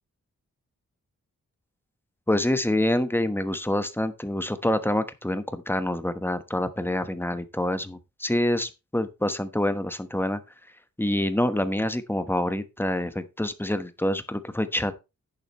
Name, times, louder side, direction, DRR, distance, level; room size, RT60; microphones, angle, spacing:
voice 1, 2.3-10.4 11.0-14.9, left 1 dB, 5° left, 1.1 m, -26 dB
11.0 x 8.7 x 3.0 m
wide cardioid pair, 150°, 30 cm